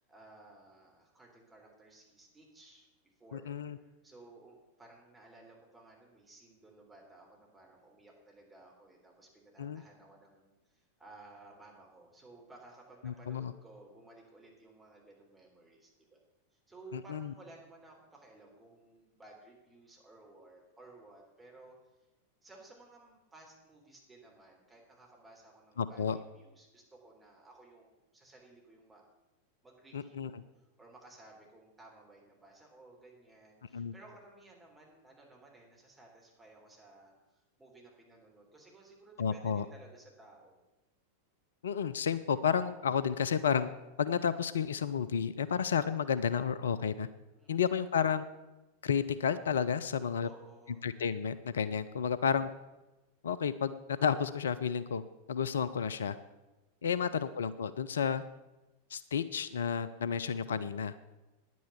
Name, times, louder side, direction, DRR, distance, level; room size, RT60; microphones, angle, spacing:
voice 1, 0.0-16.2 16.5-21.8 22.4-29.0 29.6-40.6 47.4-47.7 50.2-50.9, right 2 dB, 10° right, -2 dB, 3.5 m, -57 dB
voice 2, 3.3-3.8 9.6-9.8 13.0-13.5 16.9-17.3 25.8-26.2 29.9-30.4 33.7-33.9 39.2-39.6 41.6-43.7 44.0-47.1 47.5-48.3 48.8-50.3 50.8-52.5 53.2-55.0 55.3-56.2 56.8-58.2 58.9-60.9, left 7 dB, 65° left, 14 dB, 0.4 m, -31 dB
10.0 x 9.3 x 6.9 m, 1.1 s
figure-of-eight pair, 90°, 0 cm